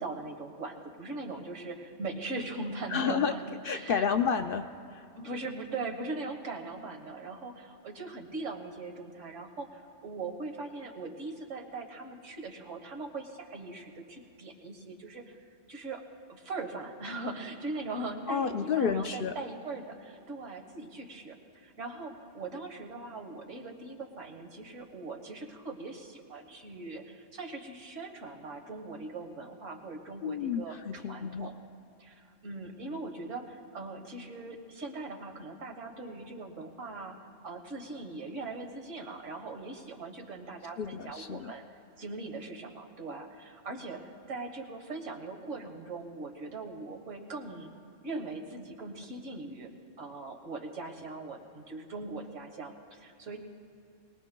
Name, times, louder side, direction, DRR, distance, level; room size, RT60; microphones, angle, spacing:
voice 1, 0.0-3.4 3.7-4.1 5.2-16.0 16.3-31.5 32.0-37.2 37.4-41.6 42.0-47.7 48.0-49.7 50.0-53.4, right 3 dB, 80° right, 3 dB, 1.7 m, -40 dB
voice 2, 2.9-3.3 3.6-5.0 18.3-19.3 30.2-31.5 40.8-41.5, left 6 dB, 60° left, 7 dB, 0.6 m, -30 dB
22.5 x 19.5 x 2.2 m, 2.6 s
omnidirectional pair, 1.3 m